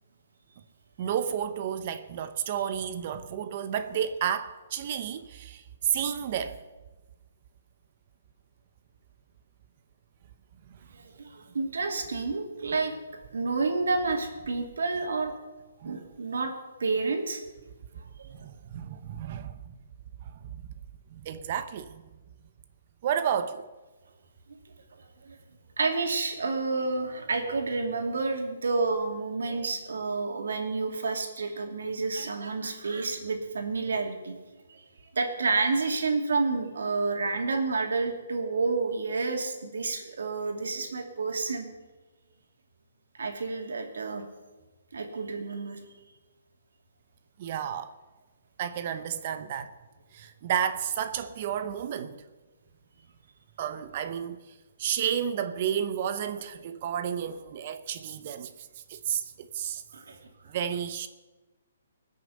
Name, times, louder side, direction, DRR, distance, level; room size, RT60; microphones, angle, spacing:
voice 1, 1.0-6.6 15.8-16.0 18.3-19.6 20.2-20.6 21.1-22.0 23.0-23.7 47.4-47.9 48.6-49.7 50.1-52.2 53.6-54.4 54.8-58.5 58.9-59.8 60.5-61.1, right 9 dB, 40° right, 0.7 m, -31 dB
voice 2, 10.9-13.0 13.3-15.4 15.8-16.5 16.8-17.4 18.2-18.3 25.0-25.4 25.8-34.4 34.7-34.8 35.1-41.7 43.2-44.2 44.9-45.8 59.9-60.3, right 3 dB, 80° right, 2.7 m, -29 dB
19.0 x 6.7 x 8.0 m
hypercardioid pair, 160°, 0 cm